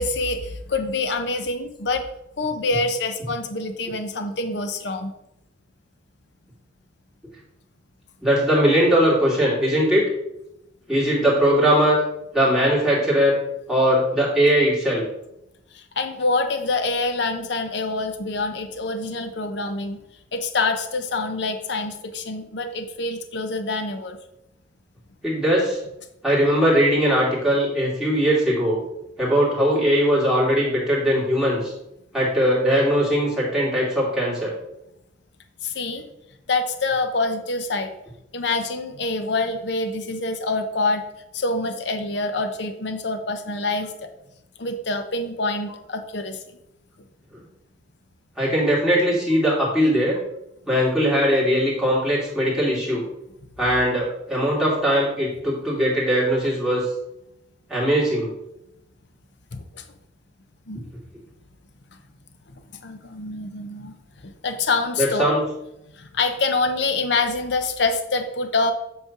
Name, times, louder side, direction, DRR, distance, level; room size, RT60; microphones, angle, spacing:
voice 1, 0.0-2.0 2.4-5.1 15.7-20.0 20.3-24.2 35.6-36.1 36.5-37.9 38.3-41.1 41.3-44.1 44.6-46.4 59.5-59.8 60.7-60.9 62.7-63.9 64.2-65.4 65.9-68.7, left 3 dB, 65° left, 7 dB, 0.8 m, -26 dB
voice 2, 8.2-10.1 10.9-12.0 12.3-13.3 13.7-15.1 25.2-25.8 26.2-28.8 29.2-31.7 32.1-34.5 48.4-50.2 50.7-53.0 53.6-56.8 57.7-58.3 65.0-65.4, equal, 5° right, -7 dB, 2.4 m, -20 dB
8.0 x 3.3 x 5.9 m, 0.86 s
head